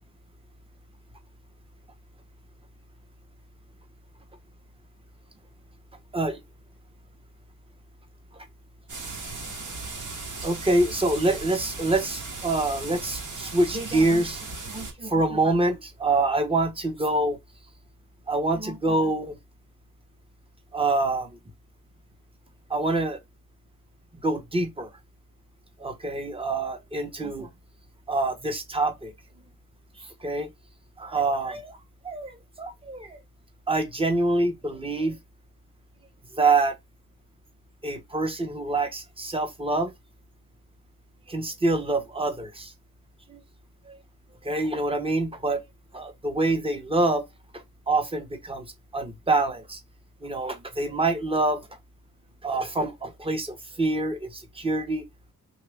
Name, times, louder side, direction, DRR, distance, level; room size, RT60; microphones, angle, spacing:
sound 1, 8.9-14.9, right 3 dB, 65° right, 1.1 m, -37 dB
voice 1, 10.4-17.4 18.3-19.4 20.7-21.4 22.7-23.2 24.2-24.9 25.8-27.5 28.1-29.1 30.0-30.5 31.0-31.8 32.0-33.2 33.7-35.2 36.3-36.8 37.8-39.9 41.3-42.7 43.3-43.4 43.9-44.0 44.4-45.6 45.9-47.3 47.5-49.8 50.2-51.7 52.4-55.1, right 2 dB, 15° right, 0.8 m, -26 dB
3.0 x 2.4 x 3.3 m
cardioid pair, 80°, 32 cm